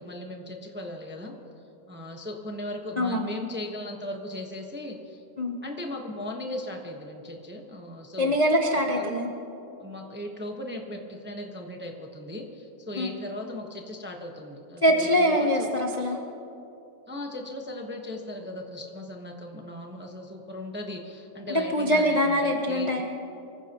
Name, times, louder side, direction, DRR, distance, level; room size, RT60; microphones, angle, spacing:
voice 1, 0.0-1.3 1.9-5.2 5.6-8.4 8.9-9.1 9.8-15.7 17.1-23.0, left 1 dB, 10° right, 1 dB, 0.7 m, -37 dB
voice 2, 3.0-3.3 5.4-5.6 8.2-9.3 13.0-13.1 14.8-16.2 21.5-23.0, equal, 35° left, 1 dB, 0.6 m, -23 dB
25.0 x 15.0 x 3.0 m, 2.9 s
omnidirectional pair, 2.2 m